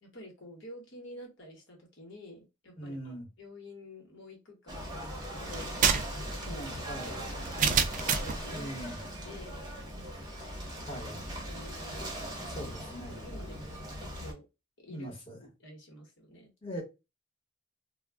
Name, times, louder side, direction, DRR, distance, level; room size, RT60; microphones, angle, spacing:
voice 1, 0.0-6.9 7.3-7.8 8.2-9.6 10.9-11.1 11.5-12.1 12.6-12.8 13.1-14.4 14.8-15.1 15.6-16.5, left 1 dB, 65° left, 1.1 m, -49 dB
voice 2, 2.8-3.3 6.4-7.3 8.5-9.0 10.9-11.3 12.4-13.2 14.9-15.4 16.6-16.8, equal, 25° left, 1.0 m, -41 dB
Ocean / Boat Water vehicle, 4.7-14.3, equal, 20° right, 0.7 m, -40 dB
sound 1, 5.5-8.4, right 7 dB, 40° right, 0.3 m, -28 dB
2.3 x 2.1 x 3.4 m
head